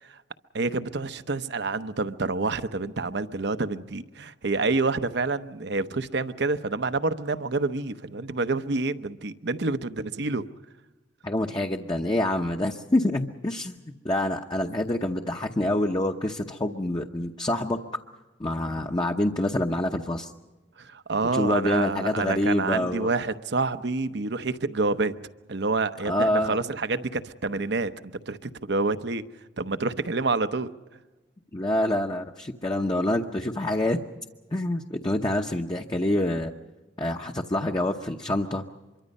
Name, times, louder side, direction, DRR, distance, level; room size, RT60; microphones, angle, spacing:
voice 1, 0.5-10.5 20.8-25.1 25.5-29.2 29.6-30.7, right 3 dB, 70° right, 0.9 m, -28 dB
voice 2, 11.2-13.8 14.0-17.8 18.4-20.3 21.3-23.1 26.0-26.6 31.5-34.0 34.5-36.5 37.0-38.6, left 1 dB, 25° left, 0.9 m, -26 dB
25.0 x 23.5 x 5.4 m
head